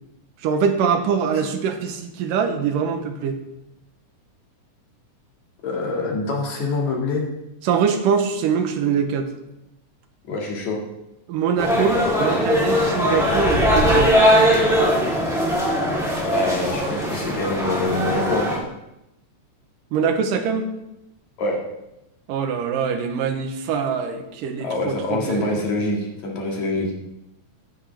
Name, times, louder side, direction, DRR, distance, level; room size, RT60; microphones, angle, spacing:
voice 1, 0.4-3.4 7.6-9.3 11.3-14.2 19.9-20.7 22.3-25.6, right 6 dB, 85° right, 6 dB, 2.7 m, -23 dB
voice 2, 5.6-7.2 10.3-10.8 16.3-18.5 21.4-21.6 24.6-26.9, left 3 dB, 60° left, -1 dB, 3.4 m, -25 dB
sound 1, 11.6-18.6, equal, ahead, 3.0 m, -20 dB
15.0 x 9.5 x 3.5 m, 0.90 s
omnidirectional pair, 3.8 m